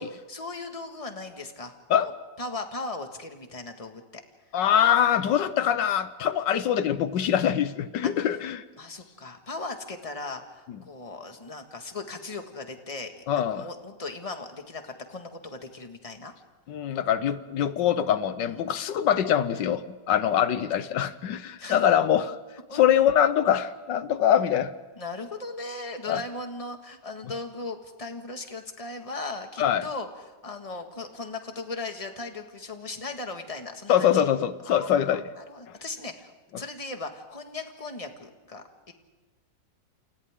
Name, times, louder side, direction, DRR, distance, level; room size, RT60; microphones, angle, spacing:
voice 1, 0.0-1.7 2.0-2.1 2.4-4.2 8.0-8.4 8.8-16.3 18.4-18.7 21.6-21.9 22.7-22.8 25.0-34.3 34.6-38.9, left 3 dB, 20° left, 5 dB, 1.8 m, -38 dB
voice 2, 4.5-8.6 13.3-13.7 16.7-22.4 22.7-24.7 26.1-26.2 29.6-29.8 33.9-35.2, left 9 dB, 85° left, 13 dB, 1.5 m, -23 dB
29.0 x 28.0 x 3.7 m, 1.3 s
omnidirectional pair, 1.9 m